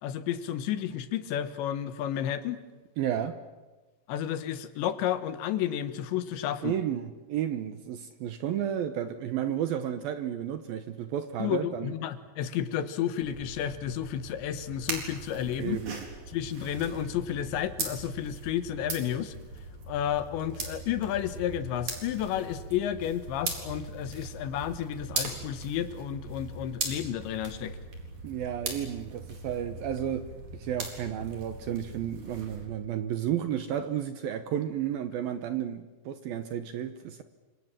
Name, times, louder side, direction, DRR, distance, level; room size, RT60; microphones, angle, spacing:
voice 1, 0.0-2.6 4.1-6.7 11.4-15.8 16.3-19.3 19.9-27.8, left 10 dB, 80° left, 3.5 m, -31 dB
voice 2, 3.0-3.4 6.6-11.9 15.6-16.0 28.2-37.2, right 10 dB, 70° right, 2.4 m, -32 dB
sound 1, 13.2-32.7, right 3 dB, 45° right, 5.2 m, -40 dB
28.5 x 26.0 x 7.6 m
omnidirectional pair, 5.3 m